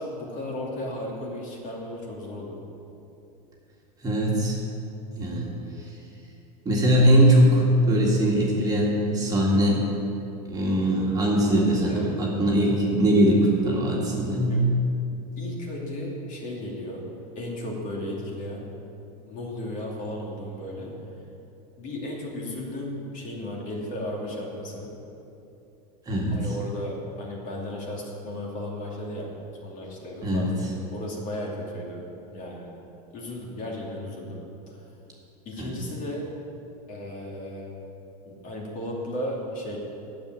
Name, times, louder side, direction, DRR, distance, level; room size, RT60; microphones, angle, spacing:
voice 1, 0.0-2.6 11.5-12.2 14.5-14.6 15.4-17.1 17.4-18.7 19.3-21.0 21.8-24.9 26.3-29.3 29.6-32.0 32.3-32.7 33.1-34.8 35.4-36.3 36.9-37.7 38.2-39.8, left 1 dB, 40° left, -2 dB, 2.6 m, -35 dB
voice 2, 4.0-4.6 5.2-5.5 6.7-9.9 10.5-14.7 26.1-26.4 30.2-30.5 35.6-35.7, right 1 dB, 20° right, -3 dB, 2.0 m, -21 dB
9.4 x 7.7 x 9.2 m, 2.8 s
supercardioid pair, 140°, 20 cm